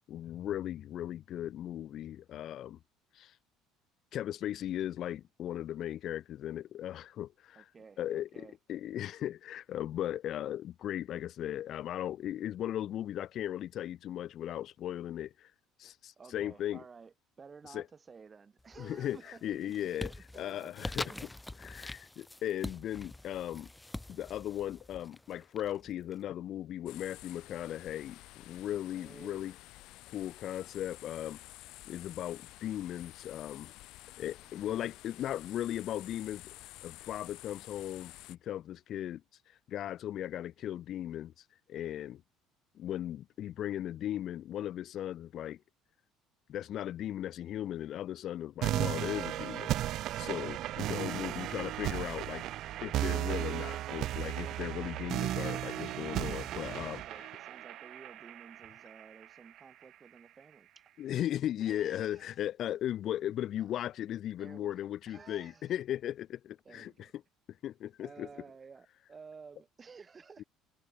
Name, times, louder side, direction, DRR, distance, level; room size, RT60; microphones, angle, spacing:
voice 1, 0.1-2.8 3.1-3.3 4.1-7.6 8.0-15.5 15.8-16.8 17.6-17.8 18.8-20.1 20.4-21.0 21.6-23.7 24.1-29.5 30.1-31.4 31.8-33.7 34.2-39.2 39.7-41.3 41.7-42.2 42.7-45.6 46.5-49.7 50.2-52.4 52.8-57.0 61.0-67.1 67.6-68.3, left 11 dB, 55° left, 1.0 m, -37 dB
voice 2, 7.5-8.6 16.2-21.3 28.7-29.5 34.4-34.5 51.1-51.5 56.8-60.8 61.6-62.4 63.6-63.8 64.4-65.7 66.6-67.1 68.0-70.5, right 5 dB, 25° right, 6.4 m, -54 dB
sound 1, 18.6-19.1 19.5-26.1, left 2 dB, 10° left, 0.5 m, -44 dB
sound 2, 26.9-38.4, left 18 dB, 70° left, 3.6 m, -51 dB
sound 3, 48.6-59.6, right 14 dB, 60° right, 0.3 m, -35 dB
cardioid pair, 110°, 0 cm